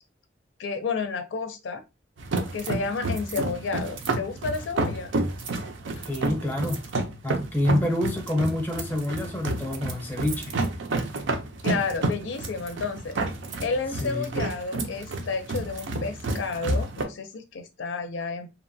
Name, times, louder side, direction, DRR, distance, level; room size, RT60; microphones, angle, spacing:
voice 1, 0.6-1.8 2.5-5.1 6.0-6.1 11.6-13.2 13.6-18.5, left 4 dB, 80° left, 0.4 m, -31 dB
sound 1, 2.2-17.0, right 2 dB, 85° right, 0.5 m, -30 dB
voice 2, 6.1-6.8 7.2-10.5 14.0-14.3, left 1 dB, 10° left, 0.6 m, -27 dB
2.8 x 2.2 x 2.6 m
head